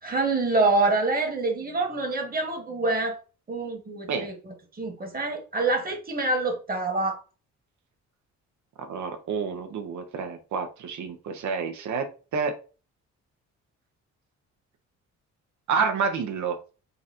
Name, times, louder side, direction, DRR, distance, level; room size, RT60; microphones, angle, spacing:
voice 1, 0.0-3.2 3.5-7.2, right 3 dB, 30° right, 1.5 m, -26 dB
voice 2, 8.9-12.1 12.3-12.5 15.7-16.6, right 5 dB, 70° right, 1.0 m, -28 dB
4.0 x 2.5 x 4.3 m
cardioid pair, 90°, 30 cm